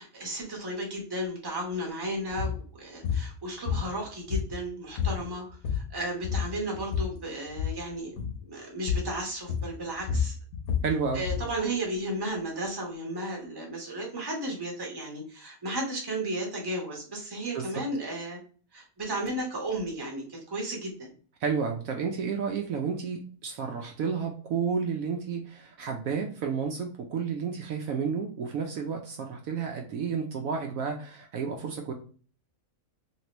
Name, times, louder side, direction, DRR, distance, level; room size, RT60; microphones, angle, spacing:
voice 1, 0.0-8.1 8.5-10.3 11.1-18.4 18.7-20.9, right 1 dB, 20° right, -1 dB, 0.9 m, -34 dB
sound 1, 2.3-2.6 3.0-3.3 3.7-4.7 5.0-5.2 5.5-6.0 6.2-7.2 7.5-7.8 8.2-8.4 8.9-9.1 9.5-11.5, left 7 dB, 75° left, 1.2 m, -29 dB
voice 2, 10.8-11.2 17.5-17.8 21.4-31.9, right 6 dB, 70° right, 2 dB, 0.9 m, -31 dB
3.1 x 2.9 x 2.9 m, 0.42 s
omnidirectional pair, 1.6 m